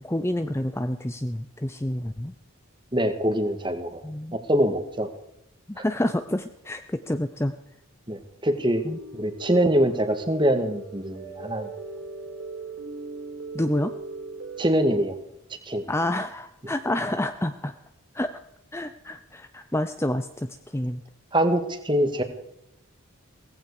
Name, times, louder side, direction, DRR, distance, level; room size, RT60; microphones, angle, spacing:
voice 1, 0.0-2.3 4.0-4.4 5.8-7.5 8.8-9.0 13.5-13.9 15.9-17.7 18.1-18.3 18.7-21.0, left 1 dB, 10° left, 9 dB, 0.6 m, -28 dB
voice 2, 2.9-4.0 4.3-5.1 5.8-5.9 8.1-8.8 9.1-11.7 14.6-15.2 15.6-15.8 21.3-22.2, right 1 dB, 20° right, 7 dB, 1.9 m, -24 dB
sound 1, 8.7-14.8, right 3 dB, 65° right, 4.7 m, -39 dB
18.0 x 15.5 x 4.9 m, 0.78 s
head